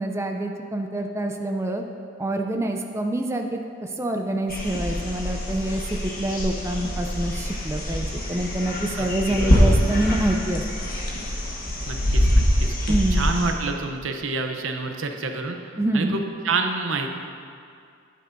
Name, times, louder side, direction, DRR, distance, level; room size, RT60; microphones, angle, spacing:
voice 1, 0.0-1.8 2.2-3.6 4.0-10.6 12.9-13.3 15.8-16.3, right 1 dB, 15° right, 3 dB, 0.4 m, -26 dB
sound 1, 4.5-13.5, equal, 50° left, 1.4 m, -24 dB
voice 2, 9.0-9.8 11.9-17.1, right 3 dB, 80° right, 5 dB, 0.7 m, -29 dB
11.0 x 9.3 x 2.6 m, 2.4 s
head